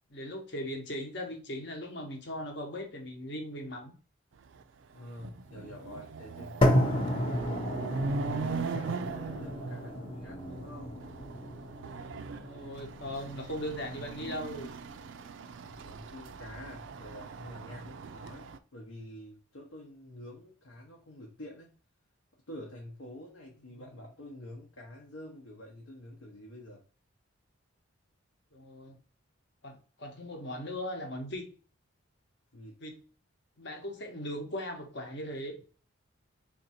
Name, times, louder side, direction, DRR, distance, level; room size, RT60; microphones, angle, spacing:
voice 1, 0.1-3.9 7.6-7.9 12.4-14.7 23.7-23.8 28.5-29.0 29.6-31.5 32.8-33.0 33.6-35.6, equal, 55° left, 3 dB, 0.9 m, -39 dB
Chatter / Car passing by / Motorcycle, 4.6-4.7 5.0-18.6, right 4 dB, 60° right, 0.4 m, -40 dB
voice 2, 4.9-6.7 7.0-7.8 8.3-11.1 15.6-21.7 22.5-26.8 32.5-32.8, left 1 dB, 85° left, -1 dB, 0.9 m, -47 dB
sound 1, 6.6-14.6, left 1 dB, 25° left, 0.6 m, -32 dB
3.6 x 2.6 x 4.1 m, 0.37 s
head